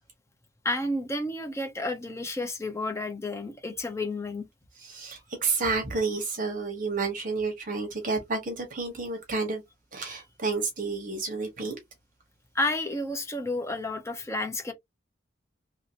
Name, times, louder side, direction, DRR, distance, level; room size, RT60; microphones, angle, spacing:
voice 1, 0.6-4.5 10.1-10.2 12.5-14.7, left 2 dB, 15° left, 0.6 m, -31 dB
voice 2, 4.8-9.6 9.9-11.8, right 4 dB, 45° right, 1.1 m, -30 dB
3.0 x 2.8 x 2.8 m
head